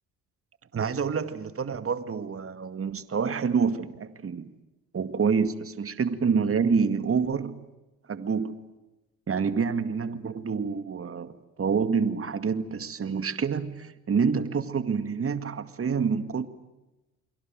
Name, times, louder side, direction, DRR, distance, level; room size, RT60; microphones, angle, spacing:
voice 1, 0.7-4.5 4.9-7.6 8.1-8.6 9.3-16.5, right 5 dB, 40° right, 11 dB, 2.2 m, -27 dB
30.0 x 23.5 x 7.7 m, 1.0 s
supercardioid pair, 75°, 36 cm